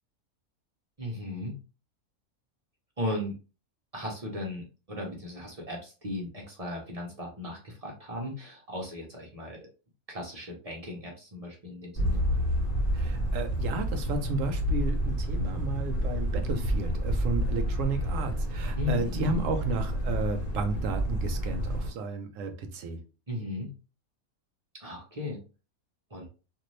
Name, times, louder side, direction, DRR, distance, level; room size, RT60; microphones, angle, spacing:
voice 1, 1.0-1.6 3.0-3.3 3.9-9.7 10.1-12.2 18.7-19.4 23.3-23.7 24.8-25.4 26.1-26.3, left 2 dB, 35° right, 0.6 m, -36 dB
sound 1, 11.9-21.9, equal, 40° left, 1.2 m, -29 dB
voice 2, 12.9-23.0, right 3 dB, 65° right, 0.9 m, -33 dB
2.6 x 2.6 x 3.1 m
omnidirectional pair, 1.6 m